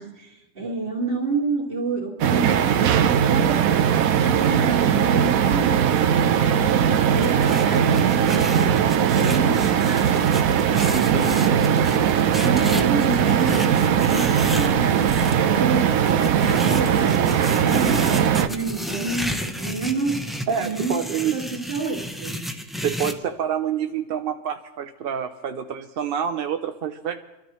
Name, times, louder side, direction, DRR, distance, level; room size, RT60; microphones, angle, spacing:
voice 1, 0.0-10.3 10.9-12.0 12.3-20.3 20.6-21.0 21.3-22.5, right 4 dB, 40° right, -1 dB, 2.5 m, -29 dB
sound 1, 2.2-18.5, right 8 dB, 85° right, 1.1 m, -20 dB
sound 2, 6.9-15.3 16.1-23.1, equal, ahead, 0.4 m, -32 dB
voice 2, 10.9-11.6 20.5-21.4 22.8-27.2, right 8 dB, 55° right, 7 dB, 0.7 m, -27 dB
27.0 x 13.0 x 3.1 m, 1.0 s
omnidirectional pair, 1.4 m